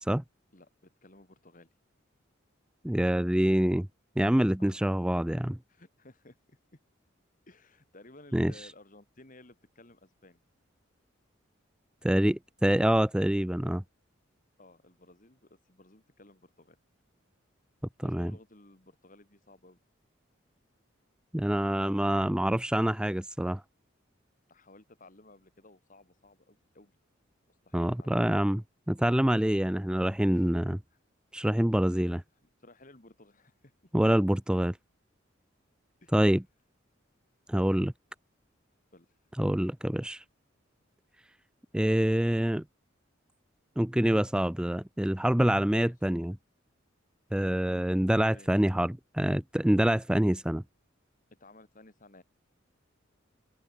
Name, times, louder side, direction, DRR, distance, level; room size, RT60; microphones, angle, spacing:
voice 1, 0.5-1.7 4.6-4.9 5.7-6.6 7.5-10.4 14.6-16.8 18.0-19.8 24.5-27.0 27.5-28.3 30.3-30.7 30.9-31.0 32.4-33.7 36.0-36.2 38.9-39.1 45.8-45.9 47.7-48.0 48.3-48.5 51.4-52.2, left 2 dB, 40° left, 3.5 m, -56 dB
voice 2, 2.8-3.9 4.2-5.6 8.3-8.5 12.0-13.8 18.0-18.3 21.3-23.6 27.7-28.6 28.9-30.8 31.3-32.2 33.9-34.8 36.1-36.4 37.5-37.9 39.4-40.2 41.7-42.6 43.8-46.4 47.3-50.6, equal, 5° right, 0.4 m, -26 dB
open air
head